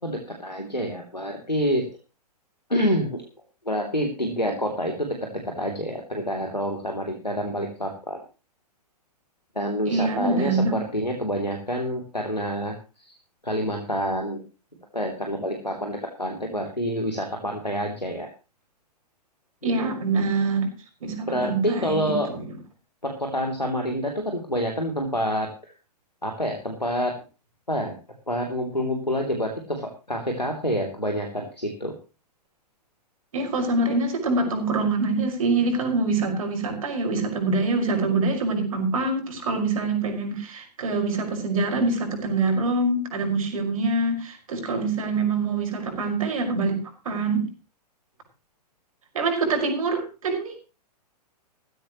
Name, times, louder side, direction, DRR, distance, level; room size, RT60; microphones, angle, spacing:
voice 1, 0.0-1.8 2.7-3.2 3.6-5.1 5.6-8.2 9.5-13.1 13.4-14.4 14.9-18.3 19.6-19.9 21.3-22.4 23.0-25.5 26.2-27.1 27.7-27.9 28.3-31.9, equal, 90° left, 2 dB, 3.1 m, -27 dB
voice 2, 9.9-10.8 19.6-20.7 21.0-22.5 33.3-46.8 47.1-47.4 49.1-50.6, right 3 dB, 55° right, 3 dB, 5.4 m, -25 dB
15.5 x 15.5 x 3.1 m, 0.32 s
figure-of-eight pair, 110°, 21 cm